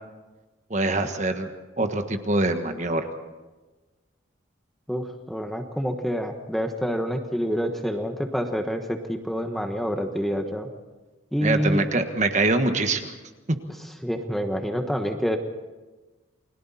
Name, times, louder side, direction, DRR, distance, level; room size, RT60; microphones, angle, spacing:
voice 1, 0.7-1.5 1.8-3.1 11.4-13.1, right 2 dB, 35° right, 7 dB, 1.4 m, -24 dB
voice 2, 4.9-10.7 11.3-11.8 14.0-15.4, equal, ahead, 4 dB, 1.2 m, -27 dB
30.0 x 21.5 x 4.3 m, 1.2 s
head